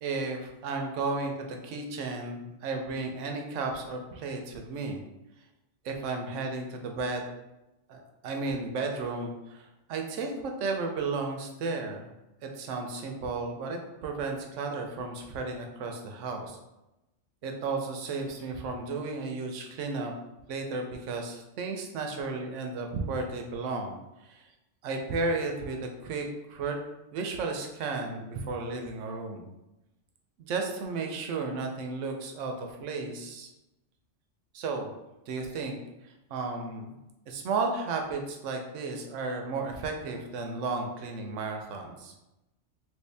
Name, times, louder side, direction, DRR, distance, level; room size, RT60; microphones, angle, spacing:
voice 1, 0.0-5.0 5.8-7.3 7.9-12.1 12.4-16.6 17.4-20.1 20.5-24.5 24.8-26.8 27.1-29.5 30.4-33.5 34.5-34.9 35.3-35.8 36.3-37.0 37.3-42.1, right 3 dB, 90° right, 3 dB, 0.9 m, -33 dB
3.1 x 2.7 x 3.3 m, 0.96 s
omnidirectional pair, 1.2 m